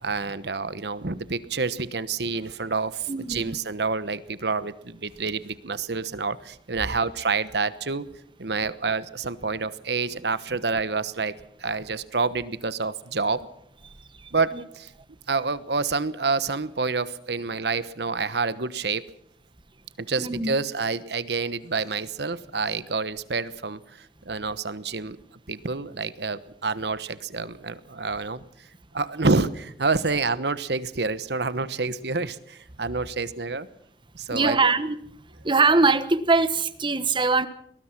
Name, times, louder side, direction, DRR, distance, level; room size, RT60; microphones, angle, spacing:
voice 1, 0.0-8.0 8.4-11.3 11.6-13.5 14.3-14.9 15.3-19.0 20.0-25.2 25.5-28.4 28.9-33.7 34.1-34.7, right 4 dB, 65° right, 15 dB, 1.1 m, -28 dB
voice 2, 3.1-3.5 20.2-20.5 34.3-35.0 35.4-37.5, right 3 dB, 25° right, 13 dB, 1.2 m, -22 dB
22.5 x 20.0 x 6.0 m, 0.69 s
head